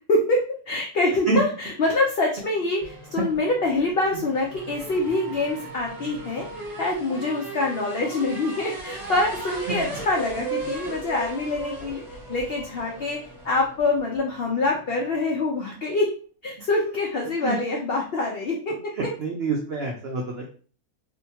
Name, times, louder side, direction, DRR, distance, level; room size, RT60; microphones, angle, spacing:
voice 1, 0.1-6.4 6.8-12.0 12.3-13.2 13.4-16.1 16.4-18.7, left 2 dB, 75° left, -1 dB, 0.5 m, -25 dB
sound 1, 2.8-15.3, right 2 dB, 15° left, 1.2 m, -37 dB
voice 2, 19.0-20.5, right 3 dB, 80° right, -1 dB, 0.5 m, -27 dB
2.6 x 2.2 x 2.7 m, 0.40 s
omnidirectional pair, 1.6 m